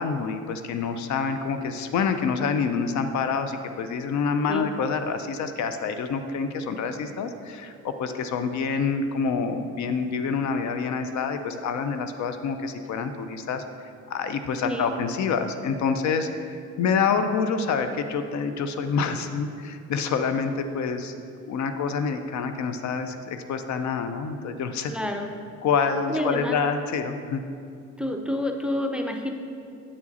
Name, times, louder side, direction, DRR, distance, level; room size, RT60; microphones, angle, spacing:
voice 1, 0.0-13.6 14.1-21.1 21.5-24.9 25.6-27.4, left 5 dB, 70° left, 8 dB, 0.5 m, -27 dB
voice 2, 24.9-25.3 26.1-26.6 28.0-29.3, left 1 dB, 5° right, 3 dB, 0.5 m, -29 dB
8.5 x 4.8 x 4.1 m, 2.4 s
cardioid pair, 90°, 30 cm